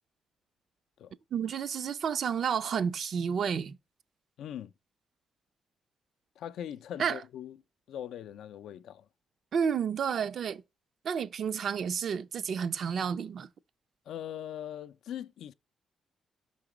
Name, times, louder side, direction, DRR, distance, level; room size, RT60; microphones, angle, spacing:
voice 1, 1.3-3.8 7.0-7.2 9.5-10.6 11.0-13.5, right 7 dB, 60° right, 0.3 m, -31 dB
voice 2, 4.4-4.7 6.4-7.6 7.9-9.1 14.1-15.5, left 10 dB, 85° left, 0.3 m, -41 dB
5.8 x 3.9 x 4.8 m
cardioid pair, 120°, 0 cm